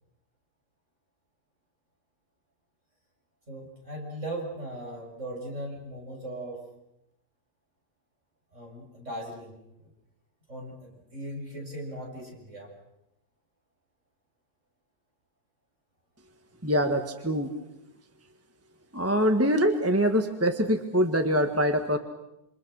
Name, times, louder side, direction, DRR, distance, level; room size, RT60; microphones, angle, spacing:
voice 1, 3.5-6.6 8.5-9.9 10.5-12.7, right 1 dB, 50° right, 0 dB, 7.1 m, -38 dB
voice 2, 16.6-17.5 18.9-22.0, equal, 10° right, 6 dB, 1.4 m, -24 dB
28.0 x 27.0 x 6.4 m, 0.87 s
omnidirectional pair, 1.6 m